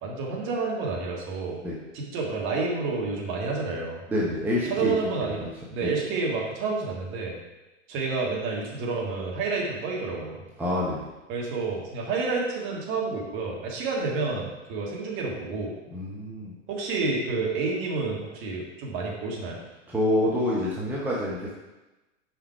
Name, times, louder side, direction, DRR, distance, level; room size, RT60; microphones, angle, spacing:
voice 1, 0.0-1.6 1.9-4.0 4.7-5.4 5.7-7.4 7.9-10.4 11.3-15.7 16.7-19.6, right 4 dB, 30° right, -2 dB, 1.6 m, -29 dB
voice 2, 4.1-5.5 5.8-5.9 10.6-11.0 15.9-16.5 19.9-21.5, left 1 dB, 5° right, -6 dB, 0.8 m, -27 dB
5.9 x 4.9 x 4.6 m, 1.1 s
figure-of-eight pair, 100°, 38 cm